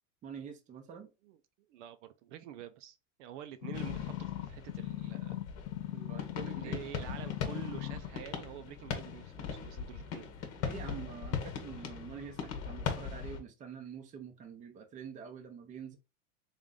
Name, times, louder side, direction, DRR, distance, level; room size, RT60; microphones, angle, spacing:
voice 1, 0.2-1.1 5.9-6.9 10.6-16.0, right 7 dB, 20° right, 0.6 m, -46 dB
voice 2, 1.7-5.4 6.4-10.3, right 11 dB, 70° right, 0.6 m, -48 dB
sound 1, 3.6-6.8 7.1-8.1 8.7-8.8, left 15 dB, 65° left, 0.6 m, -39 dB
sound 2, 3.7-13.4, left 7 dB, 40° left, 0.9 m, -40 dB
3.6 x 2.6 x 3.7 m
supercardioid pair, 140°, 38 cm